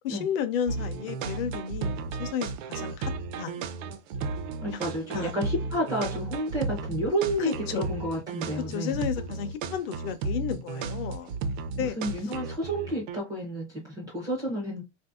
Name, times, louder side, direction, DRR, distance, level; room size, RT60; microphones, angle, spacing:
voice 1, 0.0-3.6 4.7-4.8 5.1-5.6 7.4-7.9 8.7-11.4 11.8-12.0, left 8 dB, 50° left, 0.5 m, -33 dB
sound 1, 0.7-13.2, right 4 dB, 70° right, 0.6 m, -34 dB
voice 2, 4.6-9.0 11.8-14.8, equal, 10° right, 0.3 m, -31 dB
3.5 x 2.6 x 2.3 m
supercardioid pair, 165°, 39 cm